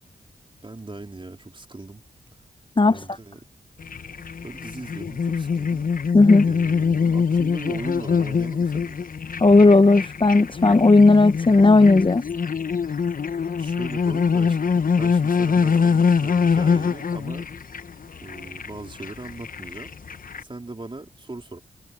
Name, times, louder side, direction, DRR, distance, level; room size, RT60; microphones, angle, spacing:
voice 1, 0.6-2.0 2.9-3.4 4.4-6.1 6.4-9.1 12.9-13.0 13.6-14.6 15.0-17.5 18.2-19.9 20.4-21.6, right 2 dB, 30° right, 3.9 m, -38 dB
sound 1, 3.8-20.4, left 6 dB, 55° left, 1.0 m, -24 dB
voice 2, 6.1-6.4 9.4-12.2, left 3 dB, 30° left, 0.9 m, -14 dB
cardioid pair, 45°, 17 cm